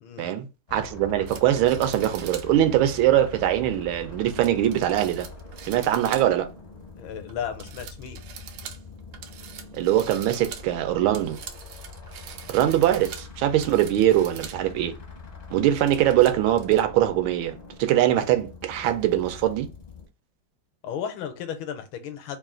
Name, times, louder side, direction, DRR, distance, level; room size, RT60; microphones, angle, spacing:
voice 1, 0.2-5.3 5.7-6.5 9.7-11.4 12.5-14.9 15.5-19.7, right 12 dB, 90° right, 1.4 m, -22 dB
sound 1, 0.7-20.1, left 4 dB, 45° left, 0.5 m, -43 dB
sound 2, 1.3-2.5 3.0-3.1 4.3-6.5 6.9-7.3 7.6-14.6 15.0-15.1 15.6-16.8, right 8 dB, 70° right, 1.0 m, -43 dB
voice 2, 7.0-8.2 20.8-22.4, left 8 dB, 80° left, 1.4 m, -34 dB
3.5 x 2.4 x 3.7 m
omnidirectional pair, 2.2 m